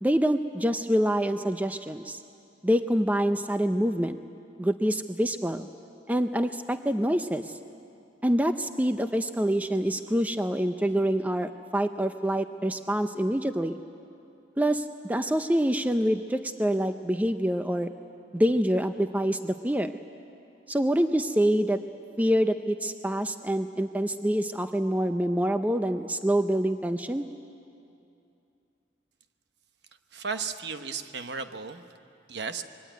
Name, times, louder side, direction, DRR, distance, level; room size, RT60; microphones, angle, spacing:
voice 1, 0.0-2.2 2.6-4.2 4.6-5.7 6.1-7.5 8.2-13.8 14.6-17.9 18.3-19.9 20.7-21.8 22.2-27.2, equal, 10° right, 8 dB, 0.5 m, -26 dB
voice 2, 30.1-31.8 32.3-32.6, right 5 dB, 60° right, 8 dB, 1.1 m, -34 dB
25.5 x 22.0 x 9.4 m, 2.6 s
head